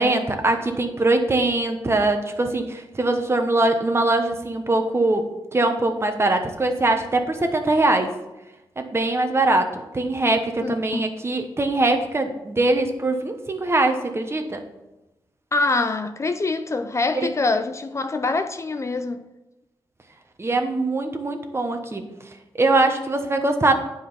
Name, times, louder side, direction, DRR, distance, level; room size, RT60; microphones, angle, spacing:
voice 1, 0.0-8.1 8.8-14.6 17.2-17.3 20.4-22.1 22.5-23.7, right 2 dB, 30° right, 1.1 m, -22 dB
voice 2, 10.6-11.0 15.5-19.3, left 3 dB, 35° left, 0.5 m, -24 dB
9.2 x 4.9 x 5.7 m
cardioid pair, 85°, 9 cm